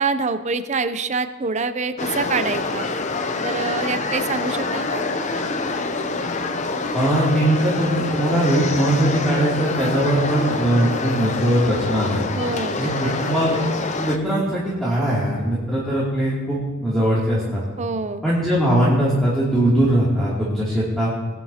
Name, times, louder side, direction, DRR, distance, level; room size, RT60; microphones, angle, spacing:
voice 1, 0.0-2.9 3.4-5.0 12.4-13.1 17.8-18.2, right 4 dB, 30° right, 11 dB, 0.5 m, -25 dB
sound 1, 2.0-14.2, left 3 dB, 35° left, 0.6 m, -26 dB
sound 2, 6.9-12.2, left 10 dB, 65° left, 4.2 m, -35 dB
voice 2, 6.9-12.2 12.8-13.6 14.0-17.6 18.2-21.1, right 1 dB, ahead, -9 dB, 2.7 m, -20 dB
20.5 x 11.0 x 2.9 m, 1.3 s
head